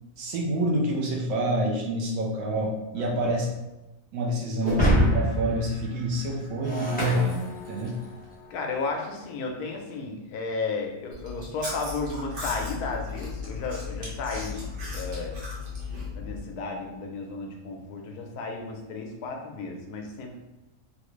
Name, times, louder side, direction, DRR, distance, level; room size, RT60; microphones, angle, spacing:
voice 1, 0.2-3.5 4.1-8.0, right 1 dB, 70° right, -1 dB, 0.9 m, -27 dB
voice 2, 3.0-3.4 8.5-15.4 16.1-20.4, left 3 dB, 80° left, 2 dB, 1.1 m, -33 dB
Shatter, 4.6-8.1, equal, 10° left, 0.6 m, -26 dB
Chewing mastication, 11.1-16.4, left 4 dB, 45° right, 0.8 m, -36 dB
3.3 x 2.4 x 3.0 m, 1.0 s
omnidirectional pair, 1.7 m